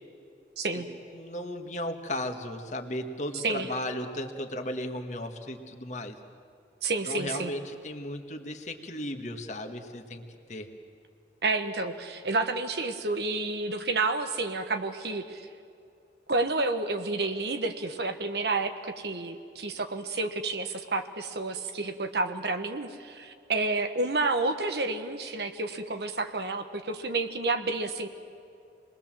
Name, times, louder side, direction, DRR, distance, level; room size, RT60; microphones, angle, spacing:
voice 1, 0.6-0.9 3.3-3.7 6.8-7.5 11.4-15.5 16.3-28.1, right 3 dB, 70° right, 7 dB, 1.3 m, -30 dB
voice 2, 1.1-6.1 7.1-10.2 10.5-10.7, left 1 dB, 40° left, 5 dB, 1.6 m, -35 dB
28.0 x 20.5 x 7.5 m, 2.5 s
head